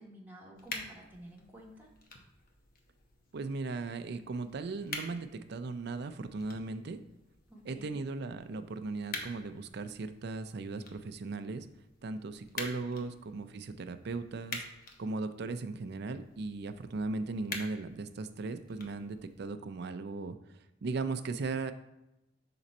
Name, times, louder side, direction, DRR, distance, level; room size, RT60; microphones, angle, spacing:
voice 1, 0.0-1.9 7.5-8.0, equal, 10° right, -2 dB, 1.1 m, -52 dB
sound 1, 0.5-19.5, left 3 dB, 50° left, 0.9 m, -48 dB
voice 2, 3.3-7.0 7.7-11.7 12.0-14.6 15.0-21.7, right 3 dB, 60° right, 9 dB, 0.4 m, -37 dB
6.0 x 3.9 x 4.2 m, 0.92 s
head